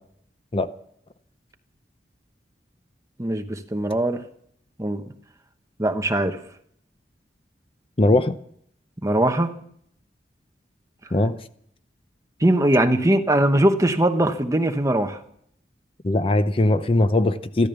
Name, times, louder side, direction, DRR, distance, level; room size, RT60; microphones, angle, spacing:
voice 1, 3.2-4.2 4.8-5.0 5.8-6.4 9.0-9.5 12.4-15.2, right 1 dB, 20° right, 6 dB, 1.1 m, -21 dB
voice 2, 8.0-8.3 11.1-11.4 16.0-17.7, left 2 dB, 30° left, 11 dB, 0.7 m, -20 dB
14.0 x 13.5 x 6.9 m, 0.68 s
head